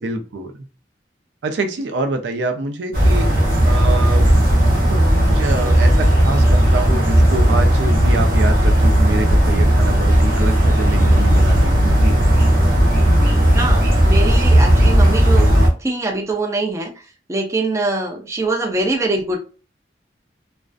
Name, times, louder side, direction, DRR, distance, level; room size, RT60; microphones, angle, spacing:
voice 1, 0.0-0.5 1.4-4.3 4.7-12.1, right 3 dB, 85° right, 6 dB, 0.5 m, -26 dB
sound 1, 2.9-15.7, equal, 50° right, 0.8 m, -14 dB
voice 2, 13.5-15.5 15.8-16.9 17.3-19.4, right 2 dB, 15° right, 2 dB, 0.4 m, -23 dB
2.4 x 2.1 x 2.4 m, 0.35 s
head